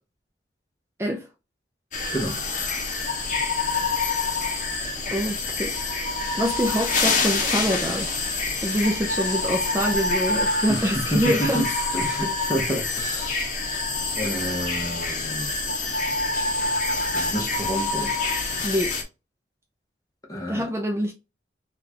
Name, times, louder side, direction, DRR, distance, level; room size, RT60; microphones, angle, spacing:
sound 1, 1.9-19.0, left 3 dB, 45° left, 0.8 m, -26 dB
voice 1, 5.1-5.8 6.4-8.1 8.6-11.7 18.6-18.9 20.5-21.1, equal, 15° right, 0.4 m, -25 dB
voice 2, 10.7-11.6 11.9-13.5 14.2-15.5 17.1-18.1 20.3-20.7, equal, 20° left, 1.0 m, -29 dB
3.8 x 2.4 x 2.8 m
head